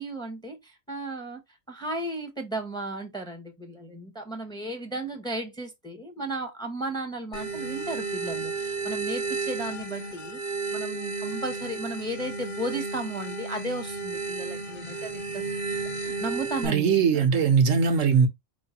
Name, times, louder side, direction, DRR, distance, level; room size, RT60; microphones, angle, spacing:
voice 1, 0.0-1.4 1.7-10.4 10.7-15.4 16.0-17.5, right 1 dB, 5° left, 0.9 m, -35 dB
sound 1, 7.3-16.7, right 4 dB, 35° left, 1.1 m, -33 dB
voice 2, 16.6-18.3, right 6 dB, 75° right, 1.1 m, -20 dB
4.7 x 3.2 x 2.8 m
omnidirectional pair, 1.3 m